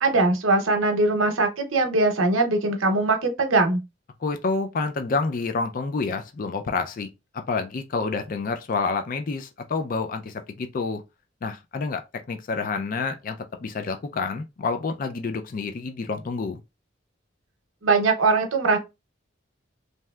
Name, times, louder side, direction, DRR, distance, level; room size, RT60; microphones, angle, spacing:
voice 1, 0.0-3.8 17.8-18.8, right 3 dB, 85° right, 0.8 m, -21 dB
voice 2, 4.2-7.1 7.3-11.0 11.4-12.0 12.3-16.6, left 4 dB, 45° left, 0.4 m, -28 dB
3.2 x 2.7 x 2.3 m
head